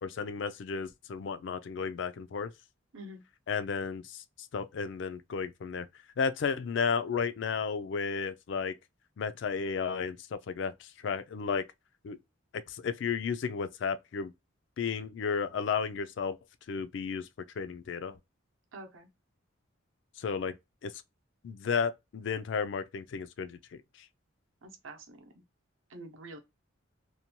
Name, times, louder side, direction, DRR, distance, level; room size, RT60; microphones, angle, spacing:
voice 1, 0.0-2.5 3.5-4.2 4.5-5.9 6.2-8.7 9.2-11.6 12.0-12.2 12.7-14.3 14.8-16.4 16.7-17.3 17.6-18.2 20.2-20.5 20.8-20.9 21.4-23.8, left 5 dB, 60° left, 0.3 m, -33 dB
voice 2, 18.7-19.1 24.6-25.3 25.9-26.4, right 2 dB, 75° right, 0.7 m, -46 dB
2.6 x 2.1 x 2.8 m
head